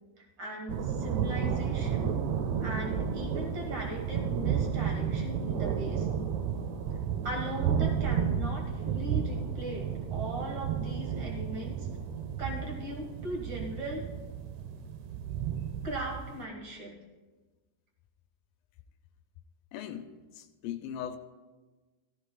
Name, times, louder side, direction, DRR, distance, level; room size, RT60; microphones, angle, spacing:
voice 1, 0.2-2.1 2.6-6.1 7.2-11.9 12.4-14.0 15.8-16.9, equal, 45° right, 0 dB, 1.6 m, -39 dB
sound 1, 0.7-16.4, right 8 dB, 85° right, 1.6 m, -32 dB
voice 2, 19.7-20.1 20.4-21.2, left 9 dB, 85° left, 8 dB, 2.3 m, -38 dB
16.0 x 13.0 x 2.3 m, 1.3 s
omnidirectional pair, 4.0 m